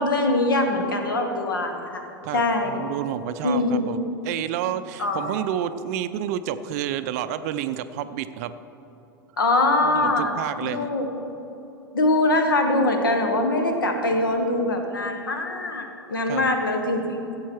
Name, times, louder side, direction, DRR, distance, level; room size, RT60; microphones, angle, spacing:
voice 1, 0.0-2.0 2.3-2.8 3.4-3.9 5.0-5.3 9.4-10.3 10.6-11.1 11.9-17.2, left 2 dB, 70° left, 5 dB, 1.3 m, -23 dB
voice 2, 2.2-8.5 9.8-10.9 16.3-16.5, right 10 dB, 45° right, 12 dB, 0.5 m, -30 dB
14.5 x 8.2 x 4.5 m, 2.9 s
figure-of-eight pair, 90°, 12 cm